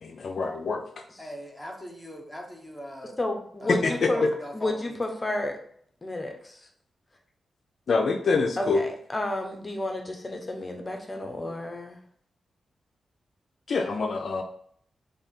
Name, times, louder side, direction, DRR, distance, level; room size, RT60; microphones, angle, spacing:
voice 1, 0.0-0.8 3.7-4.3 7.9-8.8 13.7-14.4, left 4 dB, 65° left, 5 dB, 0.4 m, -25 dB
voice 2, 1.2-3.2 3.6-5.0 5.2-5.3, equal, ahead, 0 dB, 0.9 m, -41 dB
voice 3, 3.2-4.2 4.5-5.6 6.0-6.6 8.6-12.0, left 1 dB, 25° left, 4 dB, 0.7 m, -31 dB
3.3 x 2.7 x 4.3 m, 0.62 s
cardioid pair, 90°, 0 cm